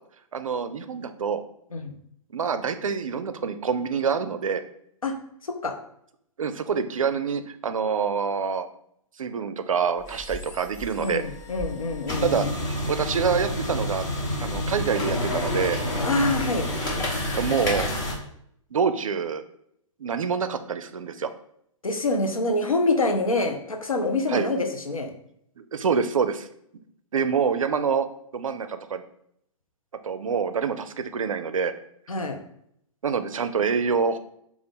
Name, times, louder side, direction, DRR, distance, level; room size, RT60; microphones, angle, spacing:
voice 1, 0.3-1.4 2.3-4.6 6.4-8.7 9.2-11.2 12.2-14.1 14.4-15.8 17.3-18.0 18.7-19.4 20.0-21.3 24.3-24.5 25.6-26.5 27.1-28.1 28.3-29.0 30.0-31.7 33.0-34.2, right 6 dB, 75° right, 10 dB, 0.4 m, -26 dB
sound 1, 10.0-18.1, left 1 dB, 20° left, 0.8 m, -29 dB
voice 2, 11.0-12.5 16.0-16.7 21.8-25.1 32.1-32.4, left 2 dB, 85° left, 5 dB, 0.6 m, -25 dB
3.8 x 2.4 x 3.4 m, 0.71 s
figure-of-eight pair, 120°, 17 cm